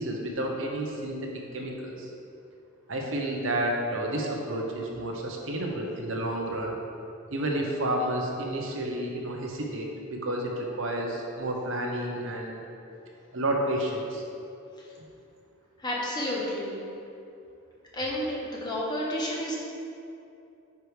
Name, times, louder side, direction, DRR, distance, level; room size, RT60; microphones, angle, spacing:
voice 1, 0.0-2.1 2.9-6.7 7.3-12.6 13.3-14.2 15.0-15.1, right 1 dB, 70° right, 0 dB, 0.9 m, -30 dB
voice 2, 15.8-16.8 17.9-19.5, equal, 20° left, -5 dB, 1.2 m, -31 dB
9.4 x 4.8 x 3.4 m, 2.7 s
head